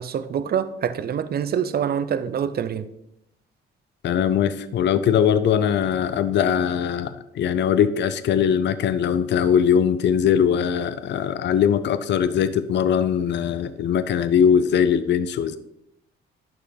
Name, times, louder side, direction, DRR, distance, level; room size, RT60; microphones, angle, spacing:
voice 1, 0.0-2.8, right 8 dB, 50° right, 0.7 m, -25 dB
voice 2, 4.0-15.6, left 8 dB, 60° left, 0.6 m, -21 dB
10.5 x 5.7 x 4.0 m
cardioid pair, 90°, 20 cm